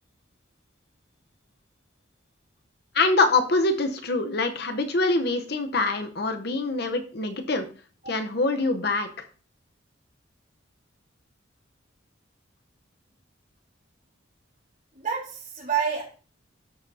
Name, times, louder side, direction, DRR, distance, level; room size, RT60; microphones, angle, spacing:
voice 1, 2.9-7.7 8.1-9.2, left 3 dB, 55° left, 7 dB, 0.8 m, -24 dB
voice 2, 14.9-16.0, right 7 dB, 40° right, -3 dB, 3.8 m, -28 dB
13.0 x 5.9 x 2.7 m, 0.39 s
head